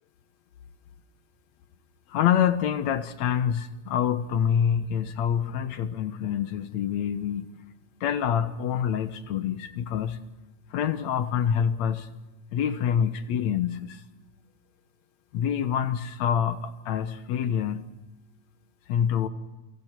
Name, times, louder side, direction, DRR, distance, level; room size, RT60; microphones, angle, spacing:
voice 1, 2.1-7.5 8.0-10.2 10.7-12.1 12.5-14.0 15.3-17.9 18.9-19.3, left 8 dB, 70° left, 2.2 m, -26 dB
28.0 x 24.5 x 4.5 m
omnidirectional pair, 3.6 m